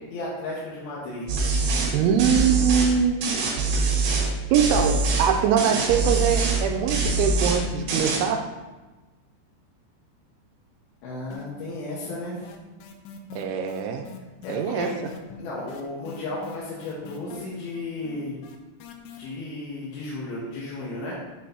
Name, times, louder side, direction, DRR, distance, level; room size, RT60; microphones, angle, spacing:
voice 1, 0.1-1.3 1.9-2.2 11.0-12.4 14.4-14.9 15.4-18.4 19.2-21.1, left 2 dB, 70° left, -6 dB, 2.8 m, -34 dB
sound 1, 1.3-1.9 2.2-2.9 3.2-4.3 4.5-5.3 5.6-6.6 6.9-7.6 7.9-8.2, right 3 dB, 65° right, 3.4 m, -24 dB
voice 2, 1.9-3.2 4.5-8.5 13.4-14.1 14.5-14.9, right 7 dB, 85° right, 5 dB, 2.9 m, -23 dB
sound 2, 11.3-11.8 12.1-19.2, left 6 dB, 85° left, 2.5 m, -43 dB
8.3 x 7.4 x 2.8 m, 1.2 s
omnidirectional pair, 5.4 m